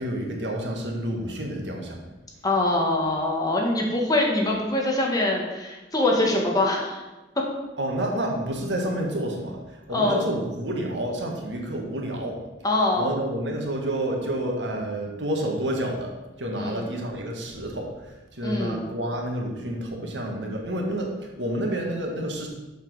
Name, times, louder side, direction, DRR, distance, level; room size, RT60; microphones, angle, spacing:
voice 1, 0.0-2.0 7.8-12.4 13.0-16.1 16.4-17.9 18.3-22.5, right 1 dB, 90° right, 1 dB, 1.7 m, -29 dB
voice 2, 2.4-7.0 7.3-7.4 9.9-10.3 12.6-13.1 16.6-16.9 18.4-18.8, left 2 dB, 20° left, -1 dB, 1.7 m, -24 dB
7.0 x 6.0 x 6.2 m, 1.1 s
head